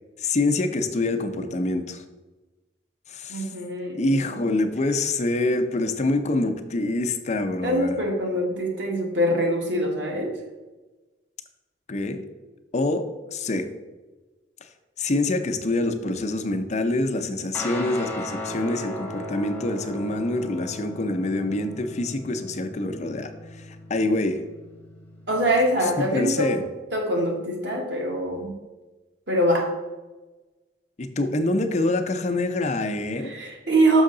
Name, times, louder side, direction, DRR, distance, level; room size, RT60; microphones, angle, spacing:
voice 1, 0.2-2.0 3.1-3.5 3.9-8.0 11.9-12.2 12.7-13.1 13.3-13.7 15.0-23.3 23.6-24.4 26.1-26.6 31.0-33.3, left 2 dB, 40° left, 7 dB, 0.5 m, -25 dB
voice 2, 3.3-4.4 7.6-10.4 25.3-26.5 26.9-28.5 29.3-29.7 33.3-34.0, right 1 dB, 90° right, -1 dB, 1.6 m, -24 dB
Guitar, 17.5-26.3, left 1 dB, 10° left, 0.9 m, -37 dB
6.3 x 5.5 x 3.8 m, 1.2 s
head